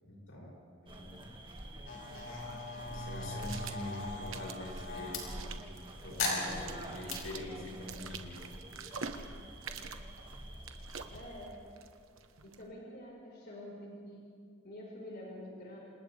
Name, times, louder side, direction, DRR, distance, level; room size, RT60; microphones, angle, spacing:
voice 1, 0.0-0.6 0.8-1.3 2.9-8.6, left 1 dB, 90° left, -3 dB, 7.3 m, -45 dB
sound 1, 0.9-11.5, right 1 dB, 25° right, 2.0 m, -47 dB
sound 2, 1.6-12.7, right 5 dB, 80° right, 1.3 m, -48 dB
sound 3, 1.9-5.2 6.2-7.2, left 3 dB, 70° left, 5.5 m, -39 dB
voice 2, 11.1-11.5 12.4-14.3 14.6-15.8, left 1 dB, 50° left, -3 dB, 5.1 m, -47 dB
29.0 x 26.5 x 3.5 m, 2.2 s
head